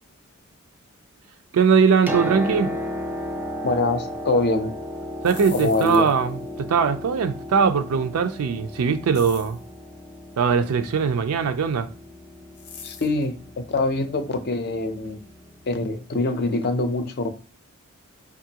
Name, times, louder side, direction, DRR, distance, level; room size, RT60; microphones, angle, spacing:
voice 1, 1.5-2.7 5.2-9.6 10.4-11.9, right 6 dB, 80° right, 0.4 m, -21 dB
Piano, 1.8-15.5 16.6-16.7, equal, 10° right, 0.4 m, -34 dB
voice 2, 3.6-4.7 5.5-6.1 12.8-15.2 15.7-17.3, left 2 dB, 45° left, 0.5 m, -24 dB
sound 1, 5.2-6.3 9.1-9.7 12.5-13.2, left 6 dB, 85° left, 0.7 m, -42 dB
5.2 x 2.3 x 2.8 m
head